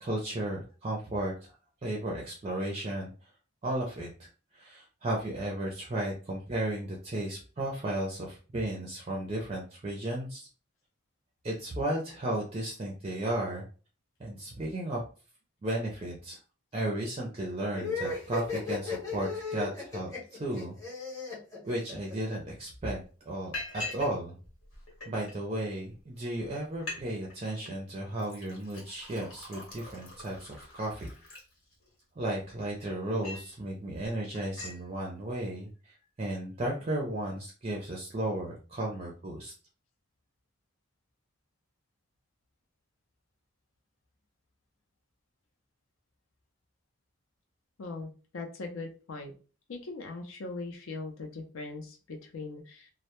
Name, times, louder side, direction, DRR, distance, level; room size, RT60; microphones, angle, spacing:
voice 1, 0.0-1.5 1.8-3.1 3.6-4.3 4.5-10.5 11.4-13.7 14.2-15.0 15.6-16.4 16.7-20.7 21.6-24.4 25.1-31.1 32.2-39.5, right 1 dB, 30° right, -1 dB, 0.4 m, -34 dB
sound 1, 17.7-22.4, left 4 dB, 15° left, 0.7 m, -35 dB
Liquid, 22.4-22.5 22.8-23.0 23.5-24.1 24.4-25.3 26.0-26.1 26.4-26.5 26.7-27.0 27.3-27.7 28.2-32.0 32.5-33.5 33.9-34.1 34.3-34.8, left 2 dB, 90° left, 1.1 m, -43 dB
voice 2, 47.8-49.3 49.7-52.9, left 3 dB, 75° left, 4 dB, 0.5 m, -40 dB
2.1 x 2.0 x 2.9 m, 0.36 s
head